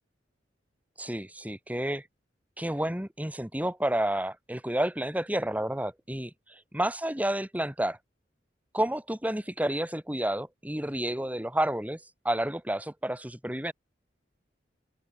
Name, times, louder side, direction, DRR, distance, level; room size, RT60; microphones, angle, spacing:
voice 1, 1.0-2.0 2.6-6.3 6.7-8.0 8.7-12.0 12.2-13.7, right 1 dB, 10° right, 2.0 m, -30 dB
open air
head